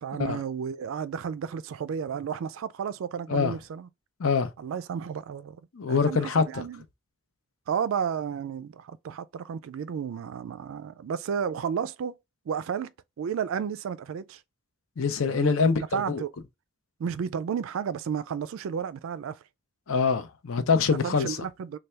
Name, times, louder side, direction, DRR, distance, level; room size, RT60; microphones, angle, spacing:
voice 1, 0.0-3.9 4.6-5.6 5.9-6.8 7.7-12.2 12.5-12.9 13.2-14.4 15.2-15.5 15.9-16.3 17.0-19.4 21.0-21.8, right 7 dB, 70° right, 0.3 m, -32 dB
voice 2, 4.2-4.5 5.7-6.6 15.0-16.2 19.9-21.4, left 5 dB, 70° left, 0.6 m, -25 dB
3.3 x 2.3 x 4.2 m
head